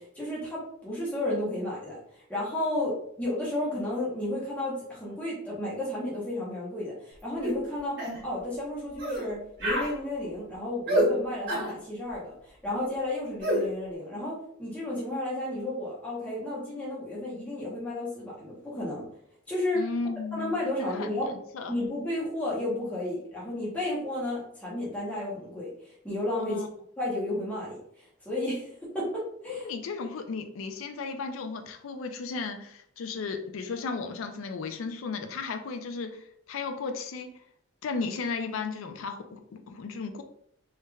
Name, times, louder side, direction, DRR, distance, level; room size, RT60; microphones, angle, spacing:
voice 1, 0.0-19.1 19.5-19.8 20.3-21.3 21.7-26.6 27.0-29.7, left 1 dB, 5° left, -8 dB, 0.9 m, -32 dB
sound 1, 7.4-7.6 8.0-8.2 9.0-9.2 9.6-9.9 10.9-11.1 11.5-11.7 13.4-13.6, equal, 55° right, 1.3 m, -26 dB
voice 2, 19.7-20.5 20.8-21.1 21.5-21.7 26.4-26.7 29.6-36.2 36.5-37.3 37.8-40.2, left 4 dB, 85° left, 7 dB, 0.4 m, -34 dB
3.2 x 3.2 x 2.3 m, 0.70 s
head